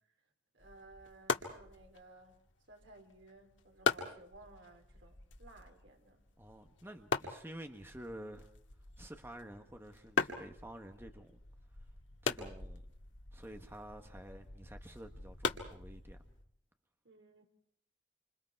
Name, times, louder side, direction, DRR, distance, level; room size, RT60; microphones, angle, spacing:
voice 1, 0.5-2.4 2.7-6.2 17.0-17.5, right 2 dB, 80° right, 3.8 m, -58 dB
sound 1, 0.6-16.4, left 4 dB, 85° left, 1.9 m, -41 dB
voice 2, 6.4-8.5 9.0-11.4 12.2-12.8 13.3-16.3, right 1 dB, 10° right, 1.4 m, -50 dB
28.0 x 26.5 x 4.7 m
head